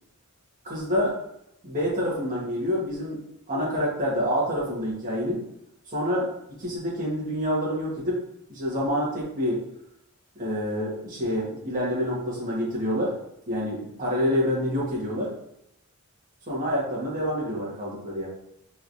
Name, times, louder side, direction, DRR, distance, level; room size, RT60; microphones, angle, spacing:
voice 1, 0.6-1.2 1.6-5.4 5.9-8.2 8.5-9.6 10.3-13.1 13.5-15.3 16.5-18.3, equal, 40° right, -6 dB, 1.2 m, -27 dB
3.2 x 2.9 x 2.6 m, 0.80 s
head